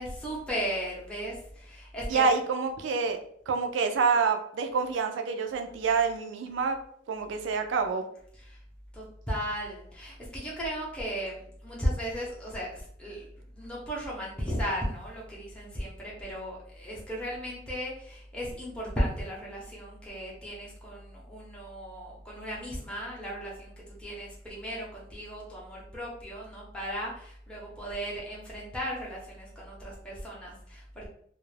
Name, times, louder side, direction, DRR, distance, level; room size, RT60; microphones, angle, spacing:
voice 1, 0.0-2.3 8.5-8.6 8.9-13.3 13.5-31.1, equal, 5° left, -5 dB, 0.6 m, -36 dB
voice 2, 2.1-3.2 3.5-6.8 7.1-8.1, right 5 dB, 70° right, 6 dB, 0.4 m, -27 dB
2.3 x 2.0 x 3.1 m, 0.65 s
head